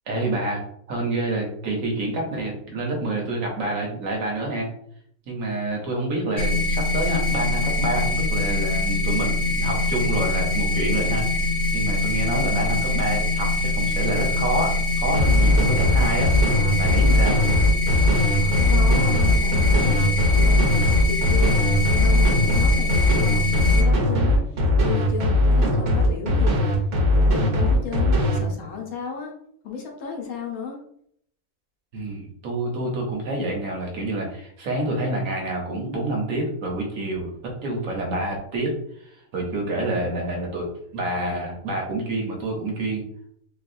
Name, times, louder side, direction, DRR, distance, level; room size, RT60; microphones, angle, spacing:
voice 1, 0.1-4.7 5.3-16.3 16.8-17.4 31.9-37.3 37.6-38.7 39.0-43.0, right 2 dB, 70° right, 0 dB, 1.2 m, -28 dB
sound 1, 6.4-23.8, left 2 dB, 50° left, 0.5 m, -23 dB
sound 2, 15.1-28.4, left 1 dB, 85° right, 1.4 m, -19 dB
voice 2, 18.3-29.3 29.6-30.8, left 6 dB, 80° left, 0 dB, 1.3 m, -34 dB
4.0 x 2.3 x 2.6 m, 0.67 s
omnidirectional pair, 1.5 m